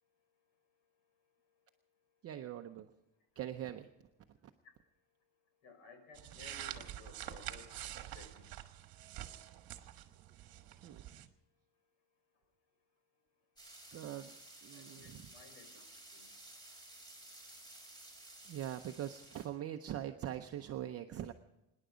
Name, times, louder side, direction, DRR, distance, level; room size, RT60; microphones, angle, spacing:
voice 1, 2.2-2.9 3.4-3.9 10.8-11.3 13.9-14.3 14.6-15.2 18.4-21.3, right 11 dB, 30° right, 5 dB, 0.6 m, -42 dB
voice 2, 5.6-7.8 8.1-8.5 14.7-15.9 16.1-16.3 20.7-20.8, left 4 dB, 85° left, 6 dB, 5.3 m, -57 dB
sound 1, 6.2-11.3, right 13 dB, 45° right, 1.4 m, -47 dB
sound 2, 13.6-19.5, right 1 dB, 10° left, 4.4 m, -55 dB
25.5 x 10.5 x 5.0 m, 0.96 s
cardioid pair, 165°, 47 cm